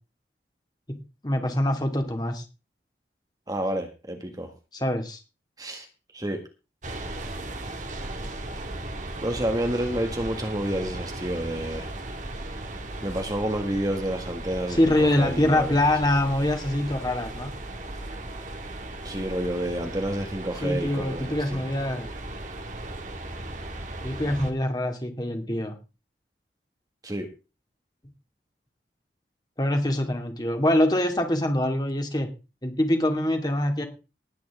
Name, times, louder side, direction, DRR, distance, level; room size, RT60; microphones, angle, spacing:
voice 1, 0.9-2.4 4.7-5.2 14.7-17.5 20.6-22.1 24.0-25.7 29.6-32.3 32.6-33.9, left 1 dB, 25° left, 4 dB, 2.4 m, -24 dB
voice 2, 3.5-4.5 5.6-5.9 6.1-6.4 9.2-11.9 13.0-15.7 19.0-21.6 27.0-27.3, right 1 dB, 20° right, 4 dB, 1.8 m, -29 dB
sound 1, 6.8-24.5, right 2 dB, 45° right, 2.0 m, -36 dB
19.5 x 9.3 x 3.6 m, 0.30 s
head